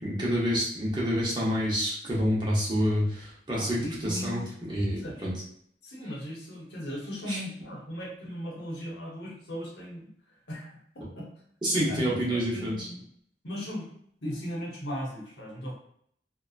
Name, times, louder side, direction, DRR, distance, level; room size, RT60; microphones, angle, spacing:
voice 1, 0.0-5.3 7.3-7.4 11.6-12.9, equal, 25° right, -6 dB, 0.8 m, -28 dB
voice 2, 3.6-4.5 5.0-5.3 5.8-10.1 10.5-11.3 11.9-13.1 13.4-13.9 14.2-15.7, equal, 75° left, -3 dB, 0.9 m, -37 dB
2.7 x 2.2 x 2.4 m, 0.65 s
head